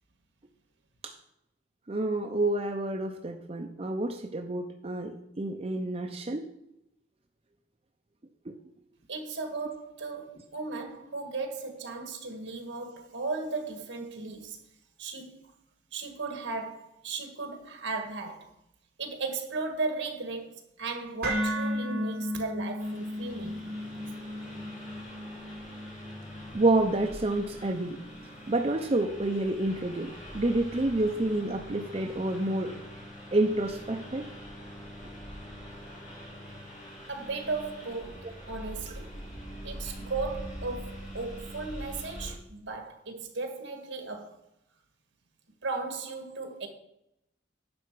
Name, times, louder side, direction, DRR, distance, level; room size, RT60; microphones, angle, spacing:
voice 1, 1.9-6.5 8.5-8.6 26.5-28.0 28.5-32.8 33.3-34.3, right 2 dB, 30° right, 0.5 m, -28 dB
voice 2, 9.1-14.6 15.0-15.3 15.9-18.5 19.0-23.6 37.1-39.1 39.6-44.3 45.6-46.7, right 3 dB, 75° right, 1.7 m, -36 dB
sound 1, 21.2-29.3, equal, 45° right, 4.5 m, -36 dB
Engine, 22.8-42.3, equal, 40° left, 3.5 m, -44 dB
10.5 x 6.7 x 4.7 m
head